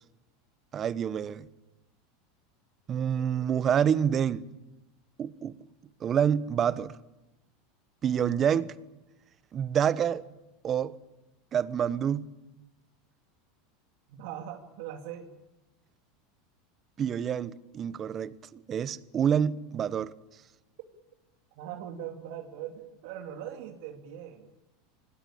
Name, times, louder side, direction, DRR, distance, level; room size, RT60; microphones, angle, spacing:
voice 1, 0.7-1.5 2.9-4.4 5.2-5.6 6.0-7.0 8.0-8.7 9.5-10.2 10.6-11.0 11.5-12.3 17.0-20.1, right 8 dB, 35° right, 1.2 m, -27 dB
voice 2, 3.0-3.5 14.1-15.3 21.6-24.5, right 10 dB, 70° right, 2.6 m, -41 dB
25.5 x 19.5 x 8.8 m
hypercardioid pair, 110°, 0 cm